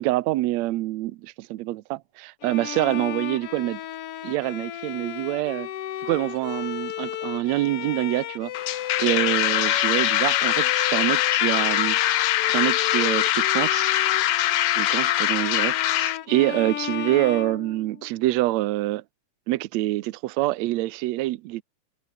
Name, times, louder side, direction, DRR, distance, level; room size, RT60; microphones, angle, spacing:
voice 1, 0.0-3.8 4.2-5.7 6.0-8.5 9.0-12.0 12.5-13.8 14.8-19.0 19.5-21.6, right 17 dB, 75° right, 1.9 m, -26 dB
Bowed string instrument, 2.4-18.3, left 11 dB, 60° left, 1.9 m, -34 dB
sound 1, 8.5-16.2, left 14 dB, 90° left, 1.1 m, -23 dB
omnidirectional pair, 3.4 m